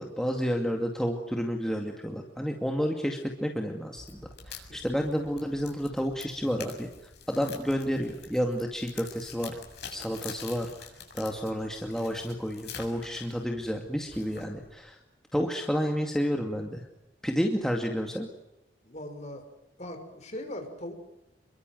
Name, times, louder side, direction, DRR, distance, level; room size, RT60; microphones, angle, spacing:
voice 1, 0.0-6.9 7.3-9.6 9.9-10.9 11.1-15.0 15.3-16.8 17.2-18.3, equal, 5° left, 2 dB, 2.4 m, -30 dB
sound 1, 4.0-14.7, left 6 dB, 60° left, 7.4 m, -47 dB
voice 2, 18.8-19.4 19.8-20.9, left 1 dB, 40° left, 5 dB, 5.8 m, -39 dB
29.5 x 23.0 x 7.9 m, 0.92 s
head